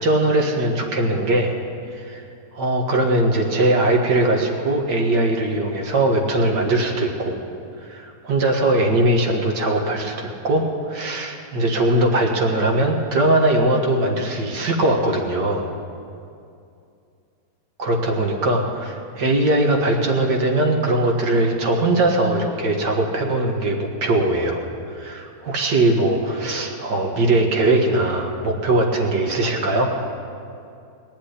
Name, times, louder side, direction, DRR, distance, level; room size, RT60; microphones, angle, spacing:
voice 1, 0.0-1.5 1.9-2.2 2.5-7.4 7.8-15.7 17.8-24.6 24.9-29.9, right 2 dB, 85° right, 1 dB, 2.3 m, -20 dB
19.0 x 7.4 x 10.0 m, 2.5 s
omnidirectional pair, 1.8 m